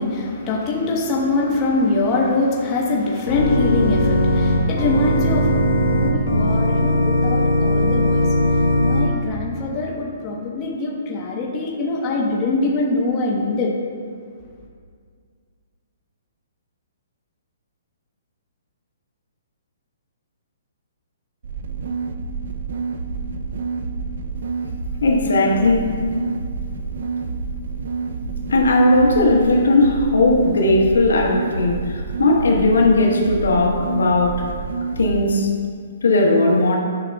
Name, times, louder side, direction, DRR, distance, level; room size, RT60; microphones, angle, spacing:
voice 1, 0.0-13.7, left 3 dB, 25° left, -2 dB, 1.1 m, -23 dB
Organ, 3.3-9.1, left 1 dB, 65° left, 1.3 m, -18 dB
sound 1, 21.4-35.1, right 4 dB, 65° right, 0.5 m, -28 dB
voice 2, 25.0-26.4 28.2-34.5 35.0-35.5 36.0-36.8, left 2 dB, 90° left, -1 dB, 1.2 m, -17 dB
10.5 x 5.8 x 2.3 m, 2.1 s
hypercardioid pair, 155°, 0 cm